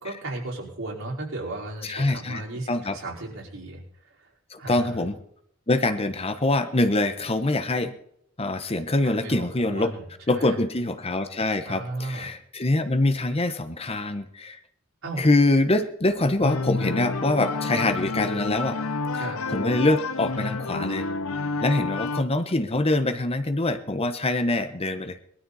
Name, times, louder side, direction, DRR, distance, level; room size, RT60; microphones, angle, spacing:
voice 1, 0.0-3.8 4.6-5.0 9.0-10.6 11.6-12.3 15.0-15.2 19.1-19.4, right 2 dB, 65° right, -3 dB, 4.9 m, -35 dB
voice 2, 1.8-2.4 2.7-3.0 4.5-5.2 5.7-7.9 8.4-9.9 10.3-14.6 15.2-18.8 19.5-21.1 21.6-25.2, left 2 dB, 30° left, 9 dB, 1.0 m, -24 dB
sound 1, 16.4-22.2, left 3 dB, 80° left, 1.0 m, -29 dB
20.5 x 13.0 x 4.2 m, 0.69 s
head